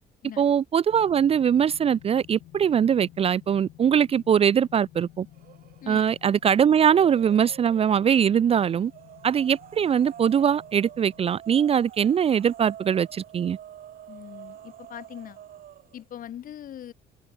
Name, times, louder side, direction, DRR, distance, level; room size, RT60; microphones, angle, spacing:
voice 1, 0.4-5.3 5.9-8.9 9.2-13.6, right 8 dB, 35° right, 0.5 m, -22 dB
sound 1, 0.9-11.2, left 15 dB, 80° left, 6.8 m, -52 dB
sound 2, 5.3-5.9 6.3-8.1 8.8-16.0, right 11 dB, 60° right, 7.0 m, -47 dB
voice 2, 14.1-15.4 15.9-16.9, left 10 dB, 55° left, 2.3 m, -41 dB
cardioid pair, 110°, 17 cm